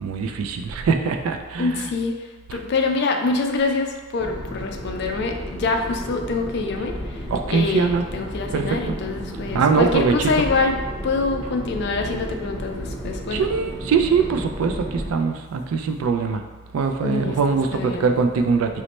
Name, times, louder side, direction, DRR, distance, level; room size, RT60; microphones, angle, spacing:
voice 1, 0.0-1.9 2.5-2.6 7.3-8.0 8.5-9.0 9.5-10.4 13.3-16.4 16.7-18.8, right 5 dB, 80° right, 6 dB, 0.3 m, -22 dB
voice 2, 1.6-2.2 2.5-7.2 7.5-10.8 11.0-13.5 17.0-17.4 17.7-18.1, left 3 dB, 50° left, 4 dB, 0.3 m, -25 dB
sound 1, 4.2-15.1, equal, 20° right, 0.6 m, -33 dB
3.1 x 2.1 x 4.0 m, 1.3 s
head